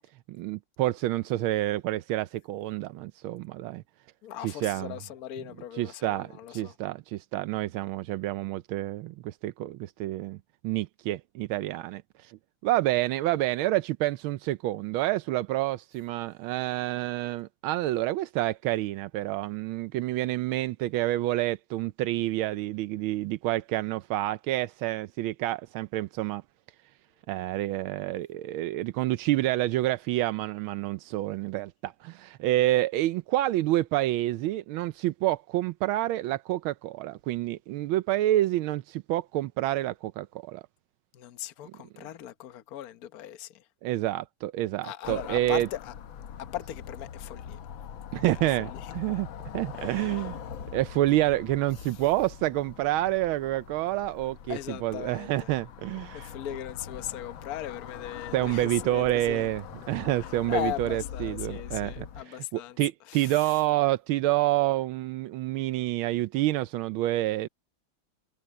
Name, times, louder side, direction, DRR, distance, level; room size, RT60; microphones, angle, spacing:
voice 1, 0.4-3.8 4.4-5.0 5.7-10.4 10.6-26.4 27.3-40.6 43.8-45.7 48.1-49.3 49.5-50.4 50.7-56.3 58.3-67.5, right 15 dB, 85° right, 1.5 m, -28 dB
voice 2, 4.2-6.7 41.1-43.6 44.8-45.9 46.4-47.6 48.6-48.8 49.8-50.1 54.5-55.5 56.1-59.5 60.5-62.8 63.1-63.3, left 12 dB, 55° left, 1.3 m, -38 dB
sound 1, 45.0-62.2, left 8 dB, 75° left, 1.8 m, -42 dB
omnidirectional pair, 2.2 m